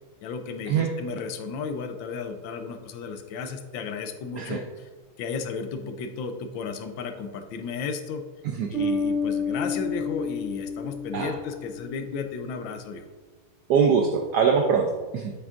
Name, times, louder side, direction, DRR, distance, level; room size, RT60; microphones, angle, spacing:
voice 1, 0.2-4.9 5.2-8.2 8.7-13.0, left 5 dB, 75° left, 6 dB, 1.2 m, -34 dB
Bass guitar, 8.7-12.2, left 3 dB, 35° right, 2.0 m, -30 dB
voice 2, 13.7-15.3, right 6 dB, 80° right, 3 dB, 0.9 m, -23 dB
7.9 x 6.1 x 2.5 m, 1.3 s
omnidirectional pair, 2.4 m